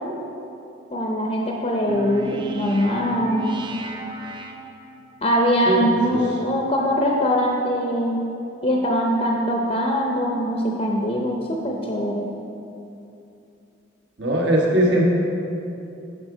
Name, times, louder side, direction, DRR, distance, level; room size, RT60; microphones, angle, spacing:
voice 1, 0.9-3.6 5.2-8.2 8.6-12.3, equal, 30° left, -1 dB, 0.6 m, -22 dB
sound 1, 1.9-5.2, right 2 dB, 25° right, 0.5 m, -34 dB
voice 2, 14.2-15.0, right 1 dB, 65° right, -3 dB, 1.3 m, -19 dB
10.5 x 4.7 x 4.9 m, 2.8 s
head